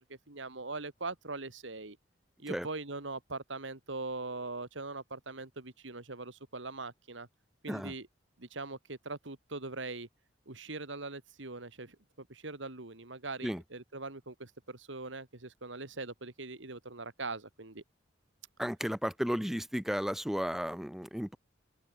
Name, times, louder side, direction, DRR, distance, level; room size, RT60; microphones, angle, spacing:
voice 1, 0.3-2.0 2.4-7.3 7.6-8.1 8.4-10.1 10.5-17.8, right 3 dB, 75° right, 2.3 m, -41 dB
voice 2, 18.6-21.4, equal, ahead, 1.0 m, -34 dB
head